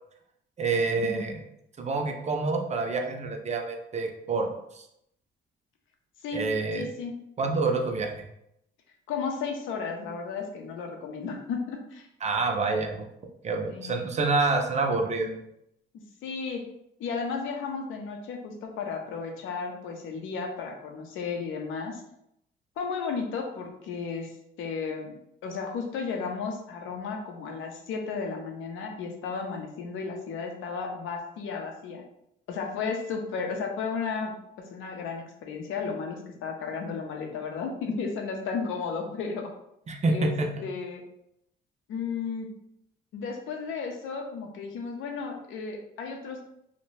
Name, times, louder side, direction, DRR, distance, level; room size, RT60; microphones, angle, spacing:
voice 1, 0.6-1.4 1.8-4.5 4.7-4.8 6.3-6.8 7.4-8.2 12.2-13.1 13.4-15.4 39.9-40.5, right 3 dB, 35° right, 4 dB, 0.5 m, -27 dB
voice 2, 6.7-7.1 9.1-12.1 13.7-14.1 16.2-16.6 17.0-22.0 22.8-24.3 24.6-32.0 32.5-34.3 34.7-39.5 40.1-40.3 40.6-41.0 41.9-42.5 43.1-46.4, left 5 dB, 85° left, 2 dB, 0.6 m, -34 dB
2.6 x 2.1 x 3.1 m, 0.78 s
cardioid pair, 90°, 20 cm